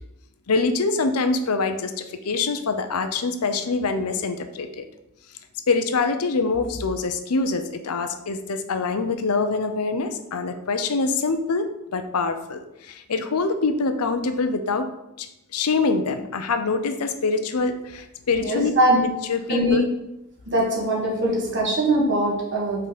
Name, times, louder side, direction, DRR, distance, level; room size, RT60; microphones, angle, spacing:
voice 1, 0.5-4.8 5.7-14.9 15.2-15.3 15.5-19.8, left 4 dB, 80° left, 9 dB, 0.6 m, -25 dB
voice 2, 18.4-19.0 19.5-19.8 20.5-22.9, right 1 dB, 55° right, -2 dB, 1.7 m, -22 dB
5.5 x 3.9 x 5.0 m, 0.89 s
head